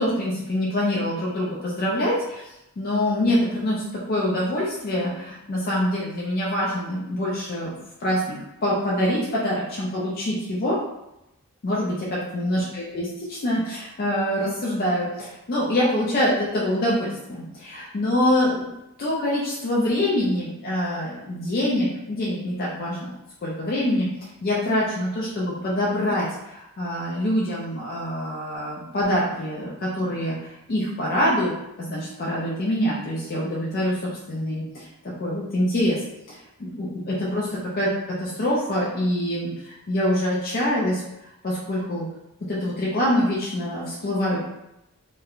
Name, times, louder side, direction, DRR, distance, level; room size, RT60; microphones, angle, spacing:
voice 1, 0.0-8.4 8.6-10.8 11.6-18.7 19.0-23.1 23.4-31.5 31.8-34.0 34.3-36.0 36.3-37.9 38.2-41.0 41.4-42.1 42.5-44.4, left 1 dB, 40° left, -6 dB, 0.4 m, -25 dB
2.9 x 2.1 x 2.4 m, 0.90 s
head